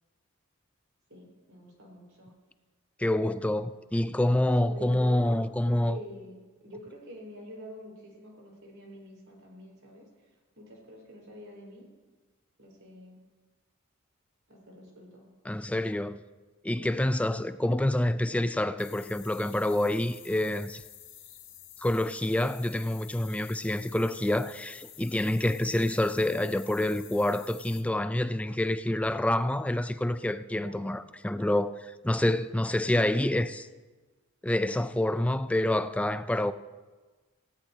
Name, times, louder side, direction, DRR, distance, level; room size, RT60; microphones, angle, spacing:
voice 1, 1.1-2.3 4.6-10.3 10.5-11.9 12.6-13.2 14.5-15.3 16.7-17.0 30.5-31.0, equal, 75° right, 4.6 m, -46 dB
voice 2, 3.0-6.0 15.5-16.2 16.6-20.8 21.8-33.7 34.4-36.5, left 1 dB, 5° left, 0.4 m, -27 dB
sound 1, 18.8-27.8, left 10 dB, 60° left, 1.8 m, -50 dB
18.5 x 16.5 x 2.8 m
head